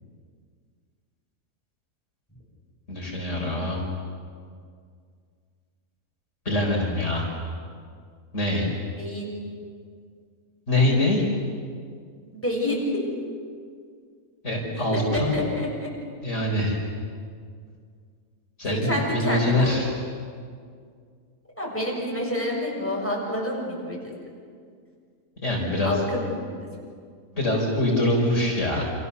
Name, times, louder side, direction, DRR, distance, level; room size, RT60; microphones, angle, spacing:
voice 1, 2.9-3.8 6.4-7.2 8.3-8.7 10.7-11.2 14.4-15.4 16.2-16.8 18.6-20.0 25.4-26.0 27.3-28.8, left 1 dB, 55° left, -1 dB, 4.9 m, -24 dB
voice 2, 9.0-9.3 12.3-13.1 14.9-15.9 18.7-19.8 21.6-24.1 25.8-26.6, left 1 dB, 10° left, -3 dB, 7.1 m, -28 dB
29.5 x 28.0 x 7.0 m, 2.1 s
omnidirectional pair, 1.5 m